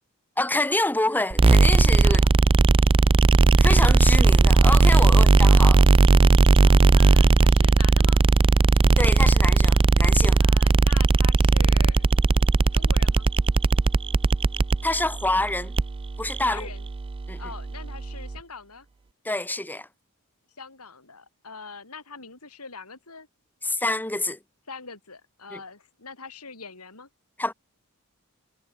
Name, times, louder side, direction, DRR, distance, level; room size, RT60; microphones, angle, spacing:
voice 1, 0.4-2.2 3.6-5.8 9.0-10.4 14.8-15.7 16.2-16.6 17.3-17.4 19.2-19.9 23.6-24.4 25.5-25.6 27.4-27.5, left 2 dB, 10° left, 1.3 m, -26 dB
sound 1, 1.3-18.4, right 3 dB, 25° right, 0.3 m, -18 dB
voice 2, 5.1-5.8 6.6-8.2 10.4-12.1 12.7-13.3 16.4-16.9 17.4-18.9 20.6-23.3 24.7-27.1, left 4 dB, 90° left, 5.1 m, -43 dB
head